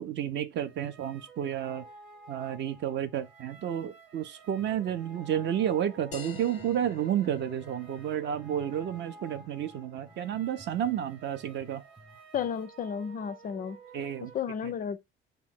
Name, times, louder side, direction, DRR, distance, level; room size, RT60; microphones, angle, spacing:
voice 1, 0.0-1.9 2.3-11.8 13.9-14.3 14.6-14.7, right 10 dB, 40° right, 0.5 m, -31 dB
sound 1, 0.6-14.3, right 3 dB, 85° right, 0.6 m, -52 dB
sound 2, 4.6-12.6, right 1 dB, 15° right, 0.9 m, -57 dB
sound 3, 6.1-11.2, left 7 dB, 90° left, 0.5 m, -50 dB
voice 2, 12.3-13.8 14.2-15.0, left 7 dB, 30° left, 0.4 m, -33 dB
3.5 x 2.2 x 4.2 m
figure-of-eight pair, 50°, 29 cm